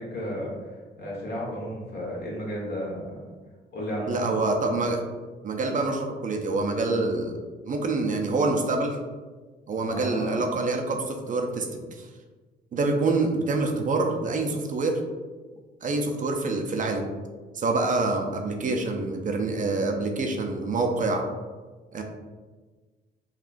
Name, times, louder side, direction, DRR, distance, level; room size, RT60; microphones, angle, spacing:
voice 1, 0.0-3.2 3.7-4.2 9.9-10.4, equal, 55° left, -4 dB, 1.3 m, -33 dB
voice 2, 4.1-5.0 5.4-7.3 7.6-9.0 9.7-12.1 12.7-15.0 15.8-17.1 17.5-21.3 21.9-22.0, right 3 dB, 40° right, 2 dB, 0.4 m, -26 dB
3.6 x 2.3 x 2.5 m, 1.3 s
cardioid pair, 90°, 20 cm